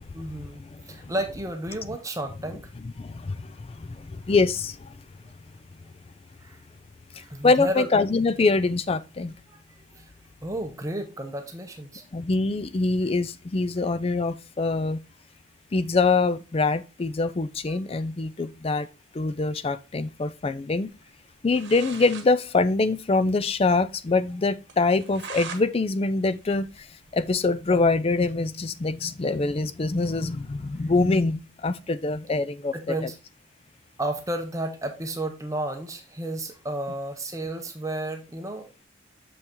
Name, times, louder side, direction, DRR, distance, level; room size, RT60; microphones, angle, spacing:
voice 1, 0.1-2.6 6.4-6.6 7.1-7.9 9.5-9.6 9.9-10.0 10.4-12.0 17.7-17.8 32.7-33.2 34.0-38.7, right 1 dB, 15° right, 0.7 m, -32 dB
voice 2, 0.7-1.1 2.8-5.0 7.2-9.3 12.1-15.0 15.7-18.9 19.1-20.9 21.4-26.9 27.1-32.7 33.0-33.1, left 3 dB, 30° left, 0.4 m, -24 dB
sound 1, 21.2-21.3 21.5-22.3 22.6-22.7 23.0-23.1 23.5-23.6 24.0-24.1 24.7-25.6 26.0-27.4, right 6 dB, 55° right, 1.1 m, -41 dB
6.8 x 5.5 x 3.0 m
head